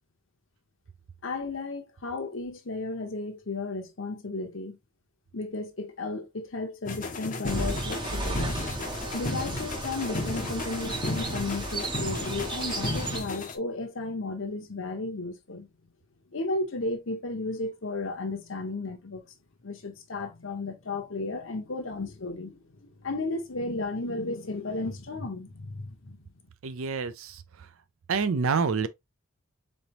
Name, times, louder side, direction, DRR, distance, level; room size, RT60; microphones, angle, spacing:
voice 1, 1.2-4.8 5.3-8.6 9.1-15.7 16.3-19.2 19.6-26.2, left 3 dB, 60° left, 0.9 m, -34 dB
sound 1, 6.8-13.5, left 2 dB, 35° left, 0.6 m, -34 dB
sound 2, 7.4-13.2, right 2 dB, 20° right, 0.7 m, -34 dB
voice 2, 26.6-27.4 28.1-28.9, right 5 dB, 70° right, 0.5 m, -27 dB
4.0 x 3.3 x 2.8 m
head